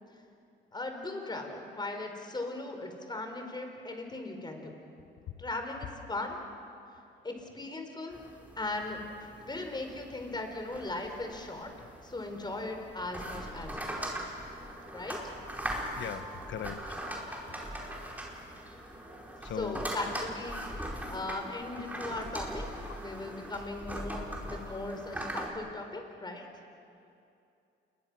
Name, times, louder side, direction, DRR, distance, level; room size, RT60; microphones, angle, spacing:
voice 1, 0.7-4.7 5.4-6.4 7.2-8.2 8.6-14.0 14.9-15.2 19.6-20.6 21.1-26.5, left 2 dB, 20° left, 4 dB, 4.3 m, -38 dB
sound 1, 8.1-25.5, right 1 dB, 10° right, 4.6 m, -40 dB
voice 2, 16.0-17.0 19.4-19.9 21.0-21.1 22.1-22.2, left 8 dB, 70° left, 10 dB, 1.3 m, -39 dB
28.5 x 22.0 x 6.2 m, 2.6 s
cardioid pair, 90°, 20 cm